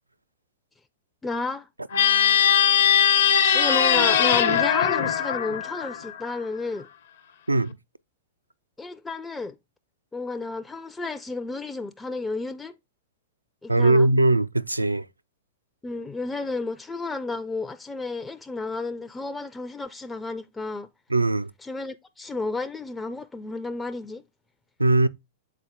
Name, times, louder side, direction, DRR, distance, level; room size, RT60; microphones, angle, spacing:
voice 1, 1.2-1.7 3.5-6.9 8.8-9.5 10.1-12.7 13.6-14.1 15.8-20.9 21.6-24.2, left 3 dB, 10° left, 0.4 m, -32 dB
sound 1, 1.9-6.4, left 8 dB, 60° left, 0.7 m, -20 dB
voice 2, 13.7-15.1 21.1-21.5 24.8-25.1, right 2 dB, 85° right, 0.3 m, -20 dB
6.7 x 4.2 x 3.5 m
figure-of-eight pair, 100°, 0 cm